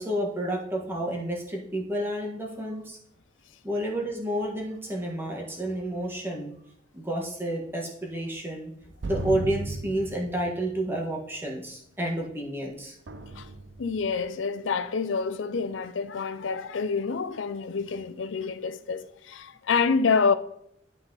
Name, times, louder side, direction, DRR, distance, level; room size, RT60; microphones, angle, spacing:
voice 1, 0.0-3.0 3.6-6.5 6.9-8.7 9.0-12.9, right 1 dB, 10° right, 1.5 m, -30 dB
sound 1, 9.0-10.8 13.1-14.0, right 2 dB, 65° right, 0.6 m, -35 dB
voice 2, 13.8-20.3, left 5 dB, 85° left, 0.5 m, -27 dB
11.5 x 4.1 x 3.9 m
head